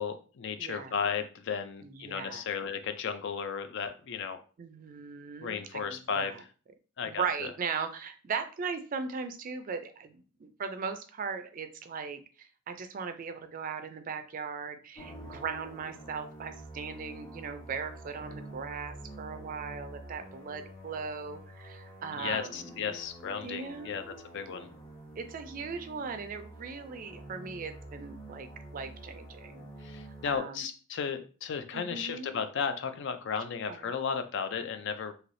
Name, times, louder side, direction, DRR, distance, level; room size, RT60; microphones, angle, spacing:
voice 1, 0.0-4.4 5.4-6.5 7.0-7.5 22.1-24.0 24.3-24.7 29.8-35.1, left 6 dB, 60° left, 9 dB, 0.4 m, -34 dB
voice 2, 0.6-0.9 1.8-2.4 4.6-6.4 7.0-22.9 23.4-24.2 25.2-29.7 30.2-30.6 31.7-32.4 33.7-33.9, right 5 dB, 40° right, 8 dB, 0.4 m, -38 dB
sound 1, 14.9-30.4, right 1 dB, 20° left, 1.2 m, -48 dB
3.2 x 2.7 x 2.5 m, 0.37 s
head